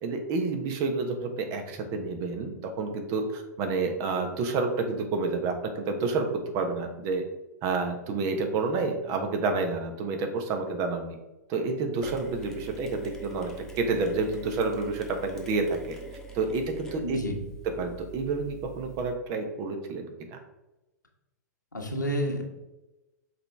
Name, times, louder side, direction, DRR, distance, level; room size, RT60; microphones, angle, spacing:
voice 1, 0.0-6.3 6.5-7.2 7.6-11.2 11.5-13.5 13.8-16.0 16.3-17.2 17.8-20.4, right 3 dB, 35° right, 4 dB, 1.1 m, -29 dB
Mechanisms, 12.0-19.1, right 3 dB, 5° left, 1.3 m, -44 dB
voice 2, 17.0-17.4 21.7-22.4, equal, 85° left, 0 dB, 1.4 m, -29 dB
6.4 x 4.7 x 3.5 m, 0.99 s
figure-of-eight pair, 105°, 10 cm